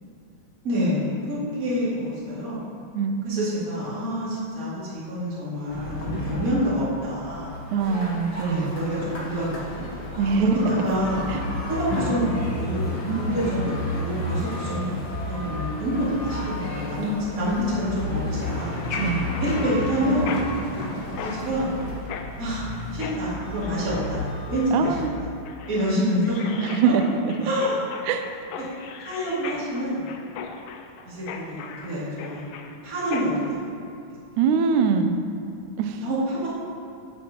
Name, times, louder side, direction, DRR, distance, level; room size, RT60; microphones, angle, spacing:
voice 1, 0.6-2.6 3.2-7.5 8.4-9.9 10.4-11.3 11.7-14.9 15.3-17.1 17.4-18.7 19.4-20.3 21.1-21.7 22.4-22.6 22.9-24.9 25.7-26.6 26.8-26.9 27.4-27.8 29.0-30.1 31.0-33.6 36.0-36.5, equal, 30° right, -9 dB, 2.4 m, -27 dB
voice 2, 2.9-3.5 7.7-8.8 10.2-10.5 11.3-11.4 13.1-13.4 19.0-19.3 24.7-25.1 26.6-27.5 28.1-28.3 34.4-35.2 35.8-36.0, right 6 dB, 80° right, 7 dB, 2.0 m, -23 dB
sound 1, 5.7-25.1, left 1 dB, 65° left, 1.1 m, -32 dB
sound 2, 7.8-22.0, equal, 45° left, 2.9 m, -39 dB
Mechanisms, 19.3-33.5, left 6 dB, 85° left, 1.5 m, -39 dB
10.0 x 9.9 x 2.9 m, 2.7 s
omnidirectional pair, 3.6 m